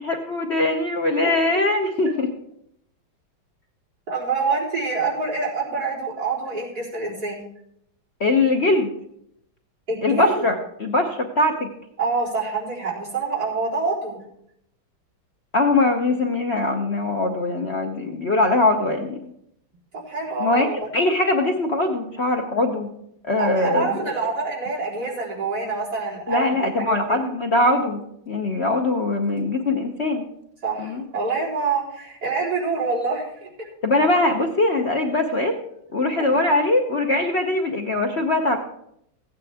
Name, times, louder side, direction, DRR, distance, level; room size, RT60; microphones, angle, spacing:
voice 1, 0.0-2.3 8.2-8.9 10.0-11.7 15.5-19.2 20.4-22.9 23.2-24.1 26.3-30.2 30.8-31.0 33.8-35.6 35.9-38.6, left 2 dB, 50° left, 2 dB, 0.8 m, -21 dB
voice 2, 4.1-7.4 9.9-10.3 12.0-14.2 19.9-20.8 23.4-26.9 30.6-33.7 36.2-36.4, right 4 dB, 50° right, -7 dB, 4.5 m, -26 dB
15.5 x 9.4 x 3.5 m, 0.73 s
omnidirectional pair, 2.1 m